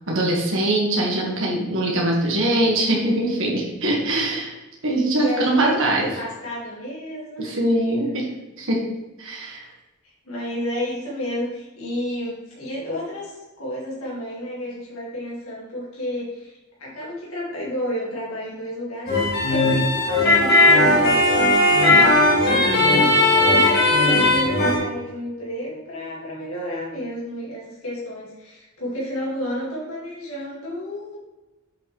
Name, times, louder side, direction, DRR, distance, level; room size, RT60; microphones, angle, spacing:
voice 1, 0.1-4.5 4.8-6.1 7.4-8.3 8.6-8.8 9.2-9.6 22.6-23.0, right 1 dB, 60° right, -2 dB, 1.7 m, -22 dB
voice 2, 5.2-7.7 10.0-16.5 16.8-31.2, equal, 75° left, -6 dB, 2.2 m, -31 dB
sound 1, 19.1-24.8, left 2 dB, 45° left, 2.0 m, -17 dB
7.7 x 5.8 x 3.3 m, 1.1 s
head